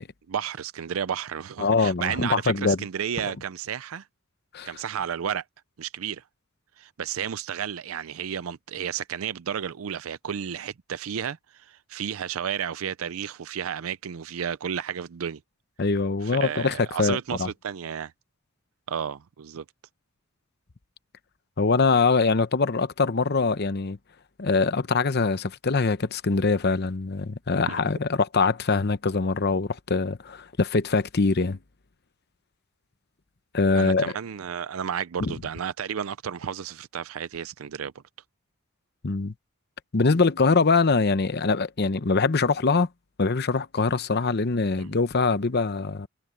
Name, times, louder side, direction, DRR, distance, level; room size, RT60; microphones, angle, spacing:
voice 1, 0.3-4.1 4.6-5.4 5.8-6.2 6.8-15.4 16.2-18.1 18.9-19.6 27.7-27.8 33.7-38.0 44.8-44.9, right 8 dB, 80° right, 0.5 m, -32 dB
voice 2, 1.6-2.8 4.5-4.7 15.8-17.5 21.6-24.0 24.4-31.6 33.5-34.1 35.2-35.3 39.0-39.3 39.9-42.9 43.2-46.1, left 4 dB, 50° left, 0.8 m, -23 dB
head